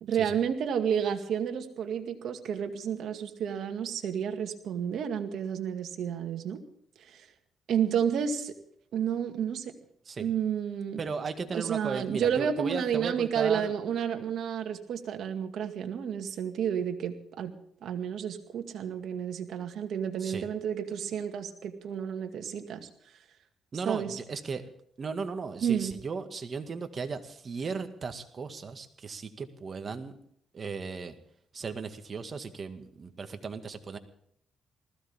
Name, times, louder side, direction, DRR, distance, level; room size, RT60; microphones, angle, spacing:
voice 1, 0.0-6.6 7.1-7.3 7.7-8.5 8.9-9.7 10.2-11.0 11.5-17.5 17.8-22.9 23.9-24.2 25.6-25.9, right 8 dB, 70° right, 5 dB, 2.2 m, -31 dB
voice 2, 11.0-13.7 20.2-20.5 23.7-24.6 25.0-30.2 30.5-31.2 31.5-34.0, right 5 dB, 40° right, 7 dB, 2.0 m, -36 dB
20.0 x 15.5 x 3.7 m, 0.65 s
cardioid pair, 90°, 0 cm